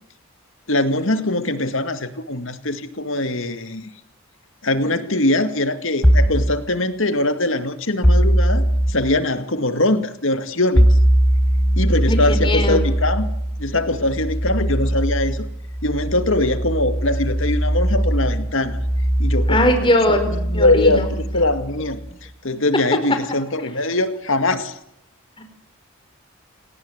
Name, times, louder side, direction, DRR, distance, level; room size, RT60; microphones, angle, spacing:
voice 1, 0.7-3.9 4.6-10.9 11.8-13.3 13.6-15.4 15.8-18.8 19.2-22.0 22.4-24.7, left 2 dB, 65° left, 9 dB, 2.2 m, -22 dB
sound 1, 6.0-6.5 8.0-9.0 10.8-22.1, equal, 5° left, 5.0 m, -20 dB
voice 2, 12.1-12.8 19.5-21.0 25.4-25.5, left 1 dB, 25° left, 7 dB, 4.4 m, -20 dB
29.0 x 18.5 x 8.0 m, 0.77 s
head